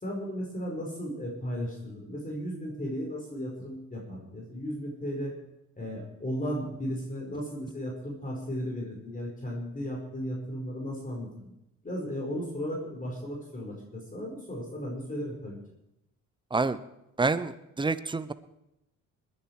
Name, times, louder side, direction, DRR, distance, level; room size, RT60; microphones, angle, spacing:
voice 1, 0.0-5.3 5.8-11.5 11.8-15.6, equal, 25° left, -2 dB, 4.9 m, -35 dB
voice 2, 17.2-18.3, right 3 dB, 15° right, 14 dB, 0.8 m, -28 dB
20.5 x 10.5 x 4.8 m, 0.86 s
cardioid pair, 90°, 30 cm